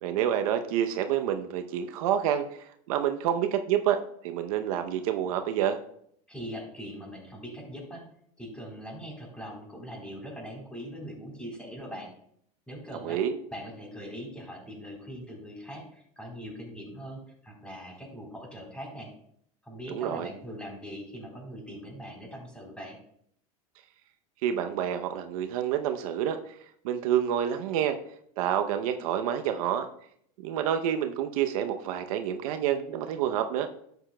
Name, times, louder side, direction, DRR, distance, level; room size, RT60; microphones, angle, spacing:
voice 1, 0.0-5.8 13.0-13.4 19.9-20.3 24.4-26.6 26.8-28.0 28.4-29.9 30.4-33.7, right 10 dB, 75° right, 7 dB, 0.7 m, -28 dB
voice 2, 6.3-8.0 8.4-12.1 12.7-13.2 13.5-19.1 19.6-23.0, equal, 5° left, -1 dB, 3.6 m, -41 dB
11.5 x 8.0 x 2.2 m, 0.67 s
supercardioid pair, 115°, 19 cm